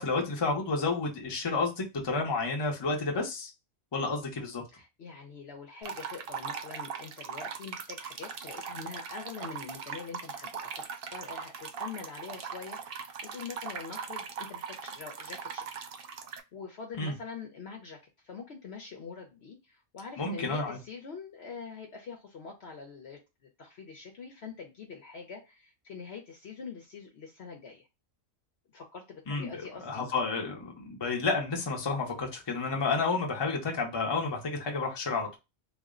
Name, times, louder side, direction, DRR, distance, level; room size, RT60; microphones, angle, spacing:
voice 1, 0.0-3.5 3.9-4.6 17.0-17.1 20.2-20.8 29.3-35.4, left 3 dB, 25° left, 0.6 m, -31 dB
voice 2, 4.7-15.9 16.5-23.2 23.6-27.9 28.7-30.0, left 5 dB, 60° left, 0.9 m, -44 dB
sound 1, 5.8-16.4, right 6 dB, 65° right, 0.5 m, -40 dB
3.5 x 2.1 x 3.7 m
omnidirectional pair, 1.4 m